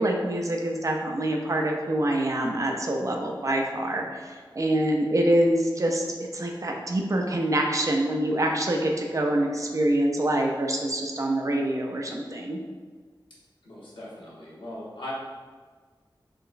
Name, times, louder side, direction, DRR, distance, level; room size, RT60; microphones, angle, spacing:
voice 1, 0.0-6.0 6.3-12.6, right 1 dB, 40° right, 1 dB, 0.4 m, -25 dB
voice 2, 13.6-15.1, left 1 dB, 80° left, -7 dB, 0.9 m, -39 dB
3.8 x 2.2 x 2.4 m, 1.5 s
wide cardioid pair, 90°, 8 cm